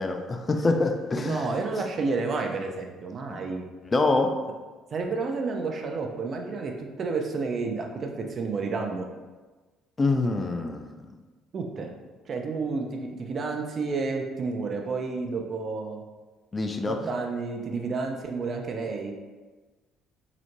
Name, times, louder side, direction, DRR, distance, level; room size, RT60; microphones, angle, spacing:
voice 1, 0.0-1.5 3.3-3.4 3.9-4.3 10.0-10.9 16.5-17.0, left 3 dB, 30° left, 5 dB, 0.3 m, -25 dB
voice 2, 1.2-3.7 4.9-6.7 7.0-9.1 11.5-11.9 12.3-16.0 16.8-19.1, right 4 dB, 45° right, 3 dB, 0.4 m, -30 dB
2.9 x 2.0 x 2.9 m, 1.3 s
hypercardioid pair, 55°, 0 cm